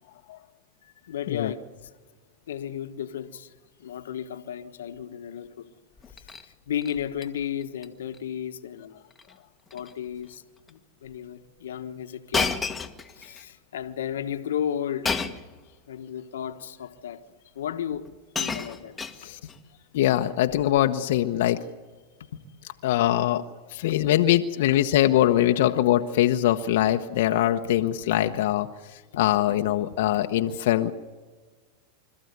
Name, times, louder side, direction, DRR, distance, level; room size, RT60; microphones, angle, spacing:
voice 1, 1.0-1.6 2.5-3.5 3.8-5.7 6.2-6.3 6.7-9.0 9.7-10.4 10.7-12.5 13.1-15.2 15.9-17.2 17.5-18.1 18.4-18.9 22.2-22.4 24.0-24.1 24.7-24.8 25.1-25.2 25.5-26.0 26.6-26.7 27.8-28.4 29.5-29.7, left 9 dB, 90° left, 1.4 m, -34 dB
Shatter, 6.0-6.5 6.8-7.3 7.6-7.9 8.1-8.2 9.1-9.3 9.7-9.9 10.7-10.8 12.3-13.4 15.0-15.5 16.5-16.6 17.7-17.8 18.0-19.6 20.5-20.8, left 4 dB, 15° left, 1.5 m, -31 dB
voice 2, 19.9-21.6 22.8-23.4 23.7-28.7 29.2-30.9, left 13 dB, 70° left, 1.0 m, -22 dB
26.0 x 14.0 x 9.6 m
supercardioid pair, 125°, 0 cm